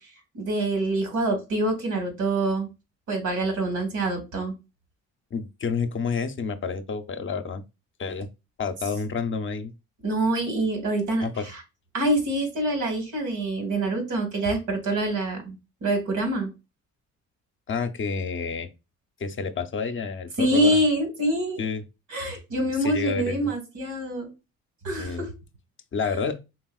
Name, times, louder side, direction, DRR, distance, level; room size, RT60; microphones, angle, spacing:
voice 1, 0.3-2.7 3.1-4.5 10.0-11.6 11.9-15.6 15.8-16.5 20.4-21.6 22.1-24.3 24.8-25.3, right 1 dB, 75° right, 2.1 m, -25 dB
voice 2, 5.3-7.6 8.0-8.3 8.6-9.7 11.2-11.5 17.7-18.7 19.2-20.8 21.6-21.8 22.8-23.4 25.0-25.2 25.9-26.4, left 5 dB, 40° left, 0.6 m, -29 dB
4.5 x 3.4 x 2.3 m
cardioid pair, 90°, 30 cm